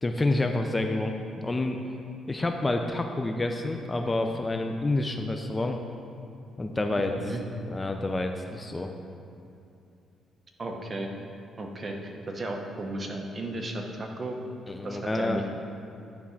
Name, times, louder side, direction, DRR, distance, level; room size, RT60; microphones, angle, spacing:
voice 1, 0.0-1.8 2.3-5.8 6.6-7.1 7.6-8.9 14.7-15.4, left 2 dB, 20° left, 4 dB, 0.5 m, -28 dB
voice 2, 10.6-11.1 11.6-14.4 14.8-15.5, right 1 dB, 35° right, 2 dB, 1.0 m, -34 dB
11.0 x 3.6 x 5.8 m, 2.7 s
cardioid pair, 90°, 0 cm